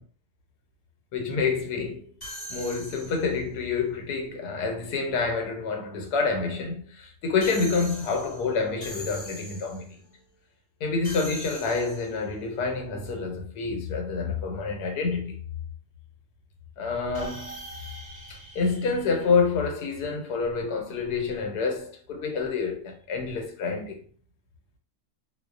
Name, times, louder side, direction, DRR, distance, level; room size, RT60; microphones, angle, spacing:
voice 1, 1.1-2.1 2.5-10.0 10.8-15.4 16.8-17.6 18.3-24.0, left 4 dB, 90° left, 1.2 m, -28 dB
sound 1, 2.2-3.5 7.4-9.9 11.0-12.3 17.1-19.7, right 1 dB, 30° left, 0.9 m, -42 dB
2.6 x 2.0 x 2.3 m
omnidirectional pair, 1.7 m